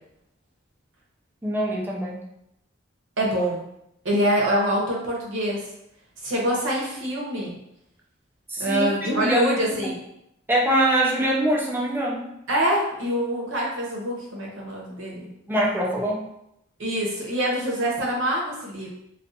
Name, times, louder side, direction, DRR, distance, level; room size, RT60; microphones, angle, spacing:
voice 1, 1.4-2.2 8.5-9.5 10.5-12.3 15.5-16.3, right 1 dB, 10° right, -3 dB, 0.4 m, -23 dB
voice 2, 3.2-3.7 4.0-5.6 6.2-7.5 8.6-10.0 12.5-15.3 16.8-18.9, equal, 75° right, -3 dB, 0.8 m, -25 dB
2.4 x 2.4 x 2.6 m, 0.80 s
head